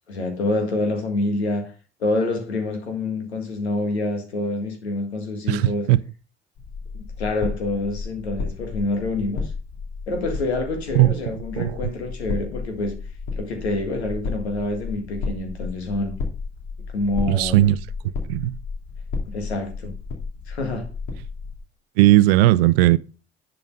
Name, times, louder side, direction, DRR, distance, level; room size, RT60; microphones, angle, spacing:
voice 1, 0.1-1.7 2.0-5.9 7.0-9.5 10.1-13.0 13.3-16.1 16.9-17.7 19.3-19.9 20.5-20.9, left 2 dB, 80° left, 1.8 m, -27 dB
voice 2, 5.5-6.0 11.0-11.1 11.6-11.7 17.3-17.8 18.3-18.5 22.0-23.0, right 15 dB, 70° right, 0.5 m, -16 dB
sound 1, 6.6-21.6, left 4 dB, 55° left, 2.9 m, -33 dB
10.5 x 4.9 x 5.3 m
figure-of-eight pair, 50°, 32 cm